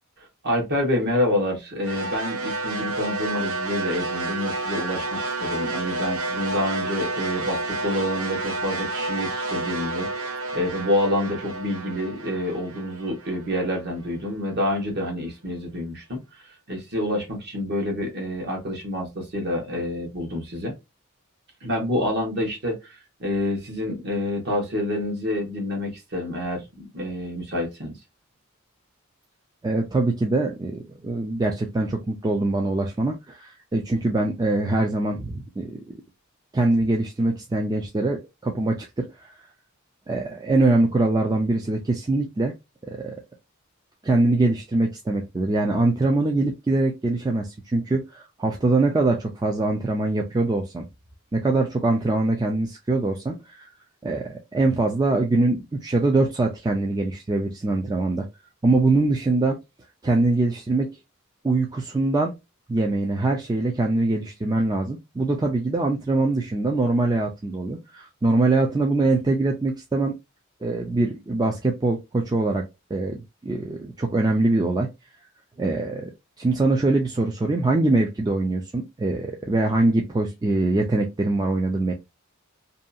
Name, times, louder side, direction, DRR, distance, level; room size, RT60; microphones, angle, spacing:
voice 1, 0.2-16.4 16.7-20.7 21.6-28.0, left 1 dB, 50° right, 1.0 m, -28 dB
sound 1, 1.8-14.1, right 2 dB, 85° right, 0.7 m, -30 dB
voice 2, 29.6-36.0 36.5-39.3 40.1-42.5 42.9-43.1 44.0-50.9 51.3-53.7 54.0-58.3 58.6-59.6 60.0-60.9 61.4-62.3 62.7-70.1 70.6-72.6 72.9-73.2 73.4-74.9 75.6-76.1 76.4-81.9, right 2 dB, 20° right, 0.3 m, -23 dB
2.7 x 2.3 x 2.5 m
head